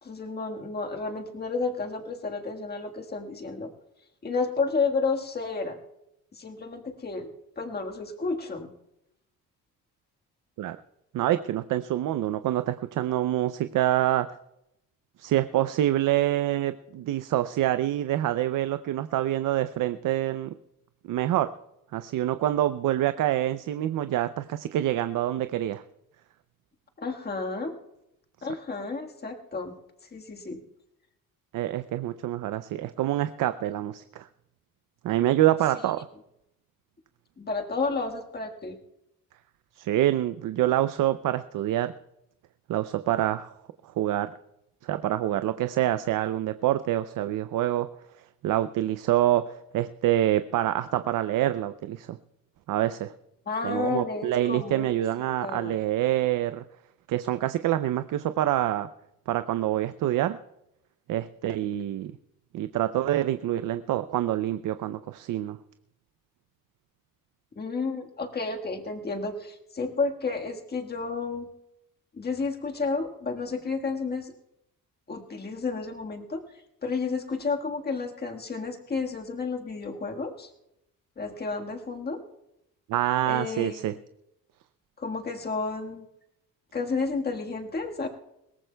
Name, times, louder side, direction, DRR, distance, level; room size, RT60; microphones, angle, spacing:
voice 1, 0.0-3.7 4.2-5.8 6.3-7.3 7.6-8.7 27.0-27.7 28.4-29.7 30.1-30.6 37.4-38.8 53.5-54.9 55.4-55.7 67.5-71.5 72.1-74.3 75.1-76.4 76.8-80.5 81.2-82.2 83.3-84.0 85.0-86.1 86.7-88.1, left 4 dB, 30° left, 3 dB, 1.5 m, -31 dB
voice 2, 11.1-14.3 15.2-20.5 21.0-21.5 21.9-25.8 31.5-34.3 35.0-36.0 39.8-41.9 42.7-43.5 44.0-44.3 44.8-47.9 48.4-52.2 52.7-53.1 53.6-56.6 57.1-58.9 59.3-60.4 61.1-62.1 62.5-65.6 82.9-83.9, right 13 dB, 65° right, 11 dB, 0.5 m, -26 dB
21.5 x 18.0 x 2.2 m, 0.85 s
cardioid pair, 120°, 34 cm